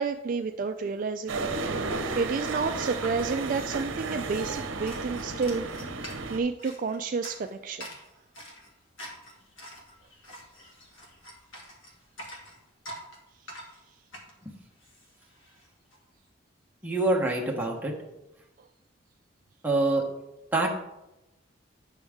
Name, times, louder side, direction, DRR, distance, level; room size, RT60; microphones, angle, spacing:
voice 1, 0.0-5.7 6.3-7.9, right 4 dB, 40° right, 6 dB, 0.3 m, -30 dB
sound 1, 1.3-6.4, right 3 dB, 80° right, 0.8 m, -33 dB
sound 2, 3.2-16.0, equal, 75° left, 2.0 m, -47 dB
voice 2, 16.8-17.9 19.6-20.0 20.5-20.7, right 2 dB, 10° right, -2 dB, 1.2 m, -25 dB
9.2 x 6.2 x 3.5 m, 0.96 s
head